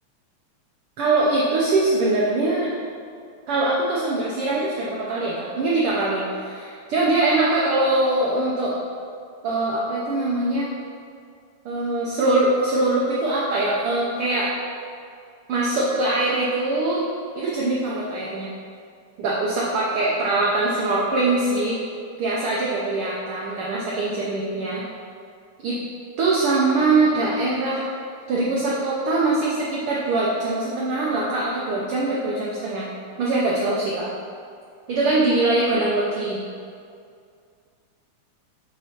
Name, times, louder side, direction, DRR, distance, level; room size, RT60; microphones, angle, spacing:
voice 1, 1.0-2.8 3.5-8.7 9.4-10.7 11.6-14.5 15.5-17.1 17.3-18.5 19.2-21.8 22.2-24.8 25.6-25.8 26.2-27.9 28.3-32.9 33.2-34.1 34.9-36.4, right 2 dB, 85° right, -5 dB, 1.2 m, -22 dB
6.6 x 3.9 x 4.3 m, 2.3 s
omnidirectional pair, 3.4 m